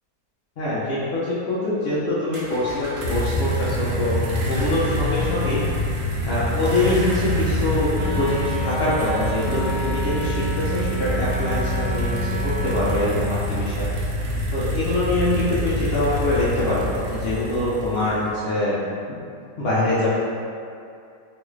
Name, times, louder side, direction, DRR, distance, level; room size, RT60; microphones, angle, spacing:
voice 1, 0.6-5.6 6.3-13.9 14.5-18.8 19.1-19.2 19.6-20.1, left 1 dB, 80° left, -10 dB, 0.5 m, -24 dB
sound 1, 2.3-18.3, equal, 70° right, 1.1 m, -26 dB
Wind instrument woodwind instrument, 7.9-13.1, right 3 dB, 30° right, 0.5 m, -31 dB
3.1 x 2.4 x 3.1 m, 2.4 s
omnidirectional pair, 1.8 m